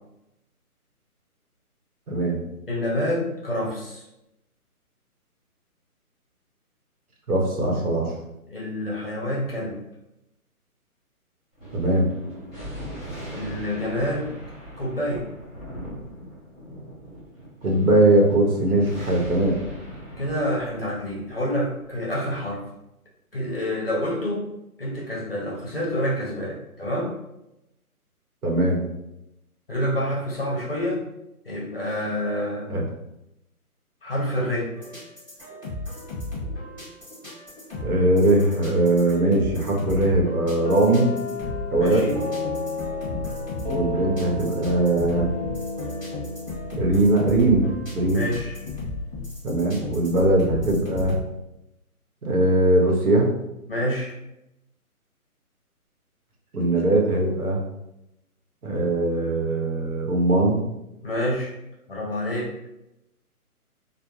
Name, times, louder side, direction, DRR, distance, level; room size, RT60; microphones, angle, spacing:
voice 1, 2.1-2.4 7.3-8.1 11.7-12.1 17.6-19.6 28.4-28.8 32.7-32.8 37.8-41.1 41.7-42.1 43.7-45.3 46.7-47.7 47.9-48.3 49.4-51.2 52.2-53.3 56.5-57.6 58.6-60.6, right 2 dB, 75° right, -1 dB, 0.9 m, -20 dB
voice 2, 2.7-4.0 8.5-9.8 13.3-14.3 14.8-15.4 20.2-22.6 23.3-24.4 24.8-27.1 29.7-31.0 31.4-32.8 34.0-34.7 41.7-42.2 48.1-48.7 53.7-54.1 61.0-61.5 61.9-62.5, equal, 40° left, -4 dB, 0.6 m, -27 dB
Thunder, 11.6-22.4, equal, 20° left, 0.9 m, -39 dB
sound 1, 34.8-51.2, left 2 dB, 15° right, 0.9 m, -34 dB
sound 2, 40.6-48.4, left 3 dB, 40° right, 0.5 m, -33 dB
2.3 x 2.1 x 3.0 m, 0.88 s
hypercardioid pair, 175°, 45 cm